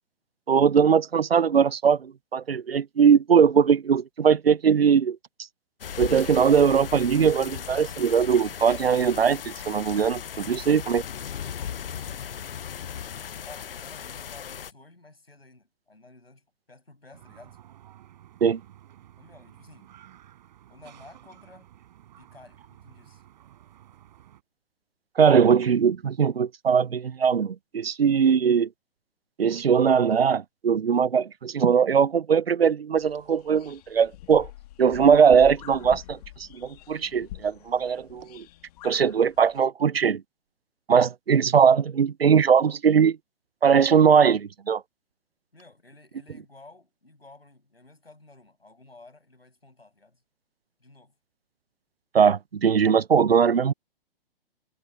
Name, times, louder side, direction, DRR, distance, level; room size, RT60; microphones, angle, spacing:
voice 1, 0.5-5.2 6.0-11.0 18.4-18.6 25.2-28.7 29.4-34.5 34.8-36.2 36.5-38.4 38.8-40.2 40.9-43.2 43.6-44.8 52.1-53.7, right 7 dB, 85° right, 0.6 m, -20 dB
sound 1, 5.8-14.7, left 8 dB, 70° left, 0.7 m, -37 dB
voice 2, 10.3-10.7 13.5-17.6 19.2-19.9 20.7-21.7 22.2-23.2 45.5-50.2 50.8-51.1, left 2 dB, 90° left, 6.6 m, -52 dB
sound 2, 17.1-24.4, right 12 dB, 50° right, 6.2 m, -52 dB
sound 3, 33.0-39.6, left 16 dB, 40° left, 1.7 m, -45 dB
figure-of-eight pair, 120°, 29 cm